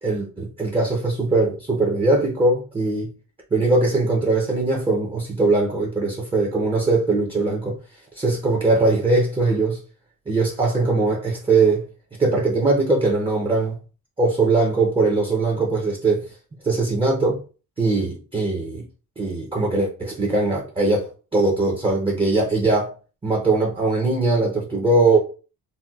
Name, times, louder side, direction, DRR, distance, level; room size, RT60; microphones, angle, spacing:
voice 1, 0.0-3.1 3.5-7.8 8.1-9.8 10.3-11.8 12.2-13.7 14.2-16.3 16.6-17.4 17.8-18.9 19.2-22.9 23.2-25.2, right 3 dB, 15° right, 0.5 m, -21 dB
4.1 x 2.1 x 2.3 m
cardioid pair, 140°, 36 cm